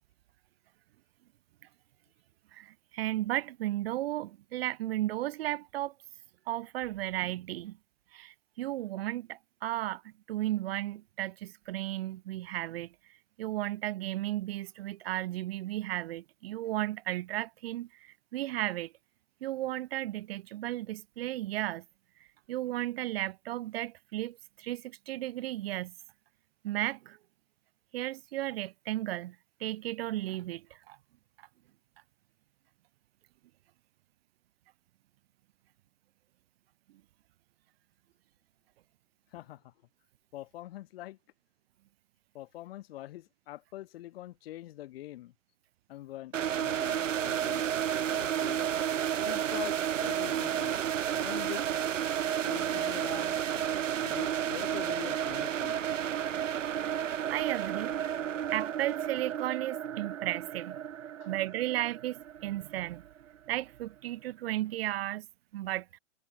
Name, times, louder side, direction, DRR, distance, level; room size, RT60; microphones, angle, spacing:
voice 1, 2.5-5.9 6.5-7.8 8.1-12.9 13.4-18.9 19.4-21.8 22.5-25.9 26.6-27.2 27.9-29.4 29.6-31.0 56.8-56.9 57.3-58.0 58.5-60.8 61.3-63.0 63.5-65.3 65.5-65.9, right 15 dB, 50° right, 5.4 m, -34 dB
voice 2, 39.3-39.7 40.3-41.2 42.3-45.3 45.9-47.7 48.1-48.6 49.2-50.8 51.1-51.7 52.4-53.7 54.0-55.8 61.2-61.3, left 15 dB, 50° left, 3.3 m, -44 dB
sound 1, 46.3-63.2, right 9 dB, 85° right, 0.8 m, -32 dB
hypercardioid pair, 125°, 37 cm